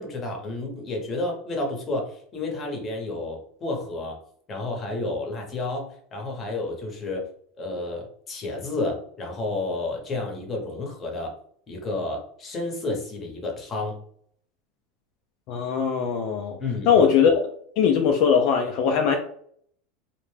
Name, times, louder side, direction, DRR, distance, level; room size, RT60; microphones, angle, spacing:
voice 1, 0.0-4.2 4.5-7.3 7.6-11.3 11.7-14.0 16.6-17.0, left 2 dB, 25° left, 1 dB, 0.9 m, -31 dB
voice 2, 15.5-16.6 16.9-17.5 17.8-19.2, left 7 dB, 55° left, 3 dB, 0.4 m, -20 dB
2.4 x 2.2 x 3.2 m, 0.63 s
supercardioid pair, 135°, 0 cm